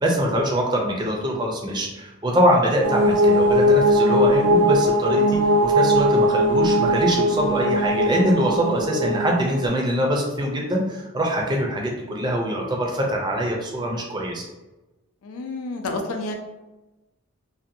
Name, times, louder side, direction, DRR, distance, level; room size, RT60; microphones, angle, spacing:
voice 1, 0.0-14.4, equal, 20° right, 0 dB, 0.4 m, -23 dB
sound 1, 2.8-9.7, equal, 90° right, 0.4 m, -19 dB
voice 2, 15.2-16.3, left 2 dB, 85° left, 3 dB, 0.4 m, -29 dB
2.6 x 2.1 x 2.5 m, 1.1 s
head